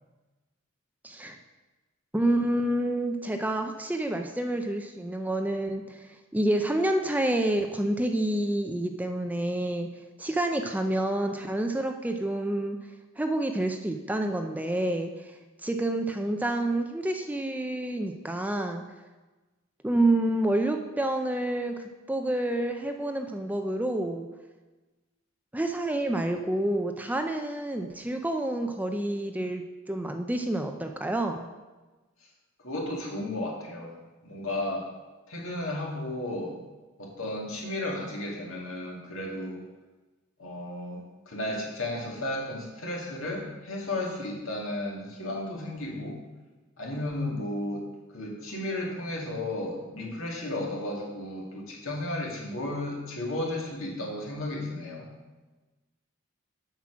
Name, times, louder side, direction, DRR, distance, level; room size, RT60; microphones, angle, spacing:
voice 1, 1.0-1.4 2.1-6.1 6.3-9.9 10.2-12.8 13.2-15.3 15.6-18.8 19.8-24.3 25.5-31.5, right 1 dB, 10° right, 5 dB, 0.4 m, -28 dB
voice 2, 32.6-34.0 34.2-34.9 35.3-36.6 37.0-39.6 40.4-46.2 46.8-55.1, left 1 dB, 70° left, -2 dB, 2.1 m, -34 dB
7.5 x 6.0 x 6.1 m, 1.2 s
head